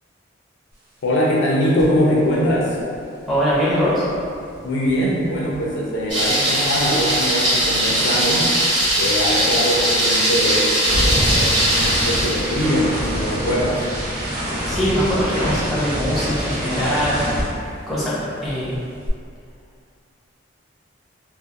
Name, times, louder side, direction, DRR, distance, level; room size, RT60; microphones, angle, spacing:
voice 1, 1.0-2.8 4.6-8.5 9.0-13.8, equal, 65° left, -4 dB, 0.4 m, -22 dB
sound 1, 1.8-2.0 2.3-6.7 6.9-18.2 18.4-19.1, equal, 50° right, 0.6 m, -27 dB
voice 2, 3.3-4.1 14.7-17.4 17.9-18.1 18.4-18.8, equal, ahead, -11 dB, 0.5 m, -21 dB
Thunder, 6.1-12.7, right 1 dB, 25° right, 0.8 m, -20 dB
2.3 x 2.0 x 2.8 m, 2.4 s
head